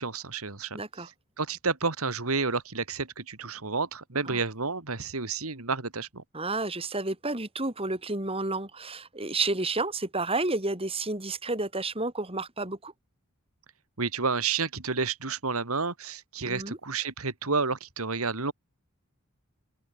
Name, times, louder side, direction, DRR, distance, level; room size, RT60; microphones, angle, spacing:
voice 1, 0.0-6.2 14.0-18.5, right 4 dB, 80° right, 2.4 m, -30 dB
voice 2, 0.7-1.1 4.3-4.4 6.3-12.9 16.4-16.8, right 3 dB, 25° right, 4.1 m, -31 dB
open air
head